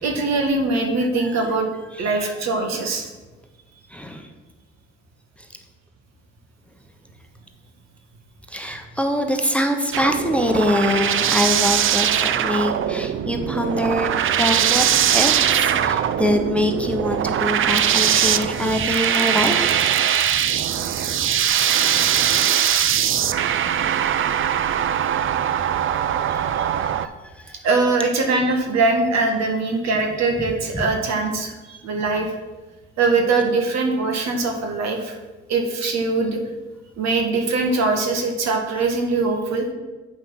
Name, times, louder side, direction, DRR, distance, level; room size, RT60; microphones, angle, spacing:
voice 1, 0.0-1.7 2.0-3.1 26.3-26.6 27.6-32.4 33.0-35.2 35.5-36.4 37.0-39.6, right 3 dB, 60° right, 3 dB, 1.8 m, -22 dB
voice 2, 1.9-2.3 3.9-4.3 8.5-14.1 14.4-14.9 15.1-19.6 20.9-21.8 23.6-24.0 25.9-26.1 27.4-27.5 30.7-30.8, left 1 dB, 5° left, 5 dB, 1.1 m, -24 dB
sound 1, 9.9-27.1, right 9 dB, 45° right, 0.6 m, -21 dB
8.3 x 5.7 x 5.6 m, 1.2 s
hypercardioid pair, 60°, 30 cm